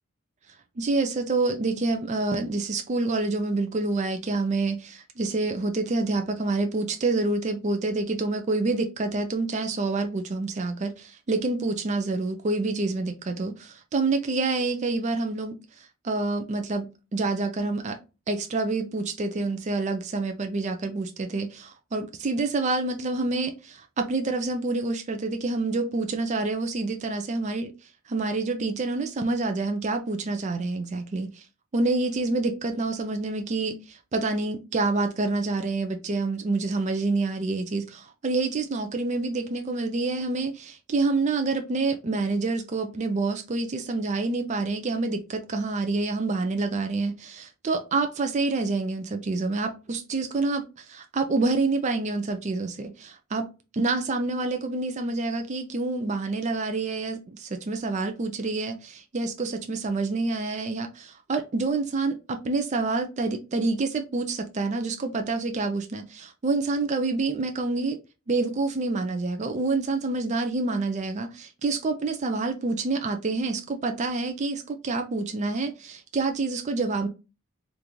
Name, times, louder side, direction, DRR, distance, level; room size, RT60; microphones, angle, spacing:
voice 1, 0.8-16.9 17.1-18.0 18.3-27.7 28.1-31.3 31.7-53.5 53.7-68.0 68.3-77.1, right 3 dB, 35° right, 0.4 m, -27 dB
3.5 x 2.5 x 3.0 m
head